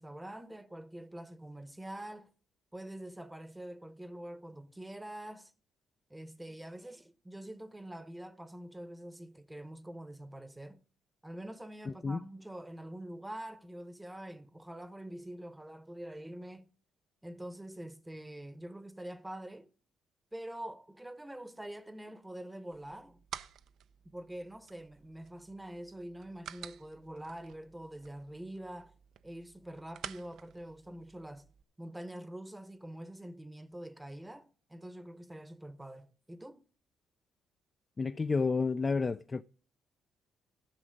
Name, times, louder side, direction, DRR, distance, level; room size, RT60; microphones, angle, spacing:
voice 1, 0.0-2.3 2.7-5.5 6.1-10.8 11.2-16.7 17.2-19.7 20.3-23.2 24.0-28.9 29.2-31.5 31.8-36.6, right 1 dB, 10° right, 0.9 m, -45 dB
voice 2, 11.9-12.2 38.0-39.4, left 4 dB, 30° left, 0.4 m, -30 dB
sound 1, 22.7-31.6, right 9 dB, 70° right, 0.5 m, -51 dB
13.0 x 6.2 x 5.2 m
cardioid pair, 85°, 0 cm